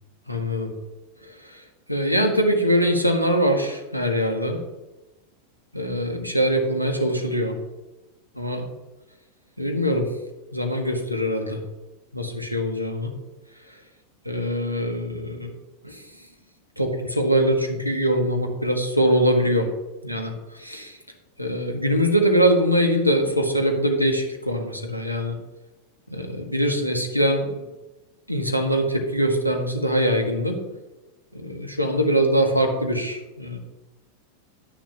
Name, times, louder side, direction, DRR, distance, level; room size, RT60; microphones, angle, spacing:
voice 1, 0.3-0.7 1.2-1.6 1.9-4.6 5.7-7.5 8.3-8.7 9.6-10.1 10.5-11.6 12.1-13.1 13.7-13.8 14.2-15.5 15.8-16.0 16.8-19.7 20.0-21.0 21.4-25.4 26.1-27.6 28.3-30.6 31.3-33.6, equal, 90° left, 3 dB, 1.6 m, -23 dB
11.0 x 10.0 x 2.9 m, 1.1 s
figure-of-eight pair, 90°, 0 cm